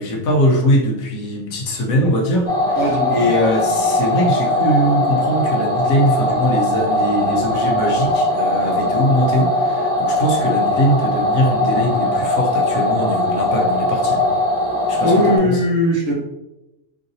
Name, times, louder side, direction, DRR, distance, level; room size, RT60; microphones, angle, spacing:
voice 1, 0.0-2.8 3.1-14.2 14.9-15.6, equal, 80° left, 1 dB, 1.2 m, -21 dB
sound 1, 2.5-15.4, left 1 dB, 15° left, 0.7 m, -20 dB
voice 2, 2.7-3.1 15.0-16.1, left 1 dB, 30° right, -4 dB, 1.0 m, -18 dB
3.8 x 3.1 x 2.7 m, 0.94 s
omnidirectional pair, 1.4 m